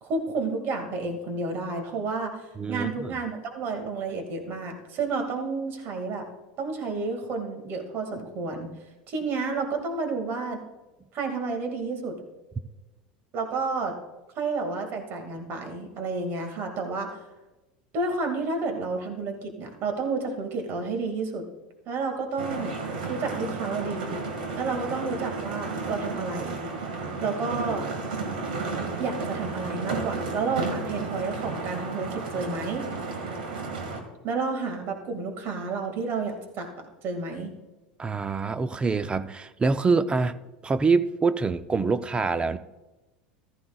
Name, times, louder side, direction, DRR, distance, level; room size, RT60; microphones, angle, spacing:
voice 1, 0.0-2.4 2.7-6.3 6.6-8.7 9.1-10.6 11.1-12.2 13.3-13.9 14.4-17.2 17.9-21.4 21.9-22.8 23.1-24.2 24.6-26.6 27.2-27.9 29.0-32.8 34.2-37.5, right 4 dB, 50° right, 2.1 m, -30 dB
voice 2, 2.6-3.1 38.0-40.3 40.6-42.6, right 4 dB, 20° right, 0.5 m, -25 dB
sound 1, 22.4-34.0, right 3 dB, 80° right, 1.8 m, -33 dB
14.5 x 14.0 x 2.3 m
hypercardioid pair, 90°, 5 cm